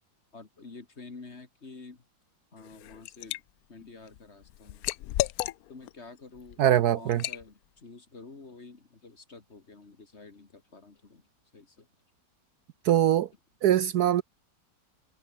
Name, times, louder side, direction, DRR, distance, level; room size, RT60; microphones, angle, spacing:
voice 1, 0.3-2.0 2.5-3.4 3.7-4.9 5.7-11.3 11.5-11.9, left 3 dB, 40° left, 2.4 m, -49 dB
Liquid, 2.6-3.4 3.8-5.9 6.4-6.6 7.1-7.4, left 15 dB, 70° left, 0.9 m, -33 dB
voice 2, 6.6-7.2 12.8-13.3 13.6-14.2, right 11 dB, 70° right, 1.1 m, -22 dB
omnidirectional pair, 1.9 m